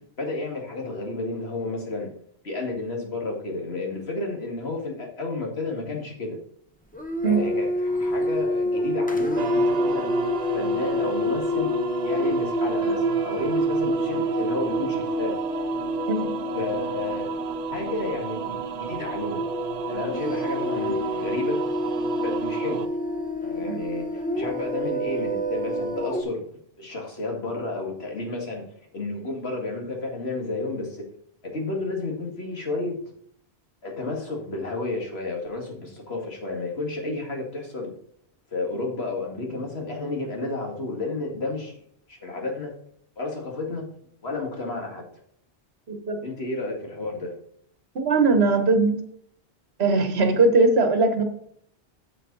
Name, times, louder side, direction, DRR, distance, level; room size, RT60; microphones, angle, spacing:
voice 1, 0.2-2.1 2.4-6.4 7.2-10.1 10.5-11.7 12.0-15.4 16.5-17.4 17.7-19.5 19.8-21.6 22.2-22.9 23.4-26.4 26.8-28.6 28.9-31.1 31.4-33.0 33.8-37.9 38.5-41.8 42.1-42.7 43.2-43.9 44.2-45.1 46.2-47.4, left 2 dB, 70° left, 0 dB, 2.4 m, -31 dB
sound 1, 6.9-26.2, equal, 10° left, 0.9 m, -27 dB
sound 2, 9.4-22.9, right 7 dB, 50° right, 0.5 m, -33 dB
voice 2, 45.9-46.2 47.9-48.9 49.8-51.2, right 3 dB, 70° right, 7 dB, 1.5 m, -20 dB
8.4 x 7.6 x 4.0 m, 0.64 s
omnidirectional pair, 1.1 m